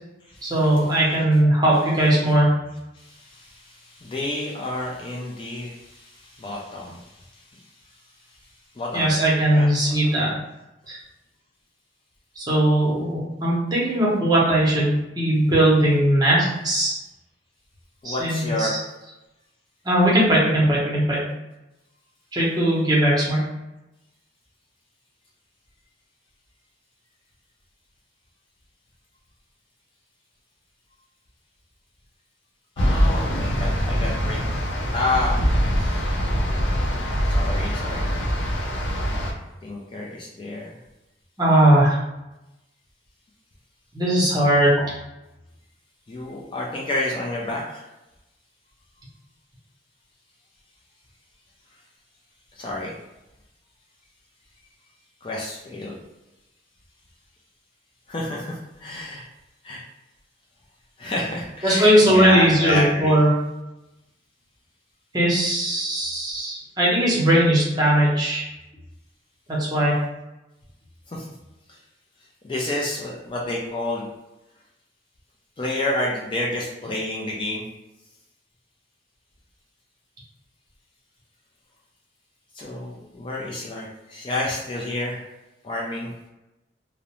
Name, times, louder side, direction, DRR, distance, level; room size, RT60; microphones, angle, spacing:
voice 1, 0.4-2.5 8.9-10.3 10.9-11.0 12.4-16.9 18.0-18.7 19.8-21.2 22.3-23.4 41.4-42.0 43.9-44.8 61.6-63.4 65.1-68.5 69.5-70.0, right 1 dB, 20° right, -6 dB, 0.7 m, -19 dB
voice 2, 2.9-7.2 7.5-7.6 8.8-9.2 9.5-9.7 10.3-10.4 18.0-18.7 32.8-34.4 34.9-36.0 37.3-38.1 39.6-40.7 46.1-47.8 52.5-52.9 55.2-56.0 58.1-59.3 59.6-59.8 61.0-63.2 71.1-71.3 71.7-71.8 72.4-74.1 75.6-77.7 82.6-85.2 85.6-86.1, left 2 dB, 30° left, -3 dB, 0.3 m, -29 dB
sound 1, 32.8-39.3, equal, 85° left, 0.5 m, -23 dB
2.4 x 2.0 x 2.9 m, 0.97 s
head